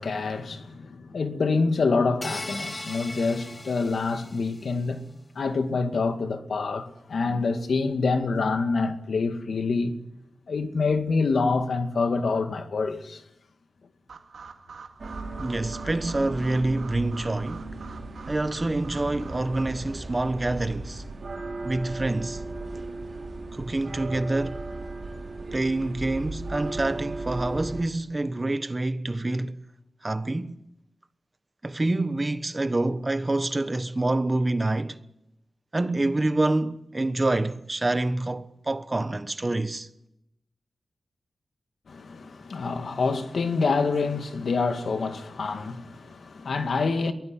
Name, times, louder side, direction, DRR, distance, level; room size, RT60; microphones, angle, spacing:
voice 1, 0.0-10.0 10.5-13.2 41.9-47.1, left 4 dB, 70° left, 2.1 m, -26 dB
sound 1, 2.2-4.7, left 1 dB, 20° left, 1.5 m, -38 dB
sound 2, 14.1-19.6, right 5 dB, 90° right, 2.3 m, -46 dB
sound 3, 15.0-27.8, right 2 dB, 50° right, 6.2 m, -36 dB
voice 2, 15.4-17.6 18.3-21.0 21.6-22.4 23.5-24.6 25.5-29.6 30.0-30.6 31.6-35.0 35.7-39.9, right 2 dB, 25° right, 1.2 m, -27 dB
23.0 x 16.5 x 9.9 m
wide cardioid pair, 105°, 0 cm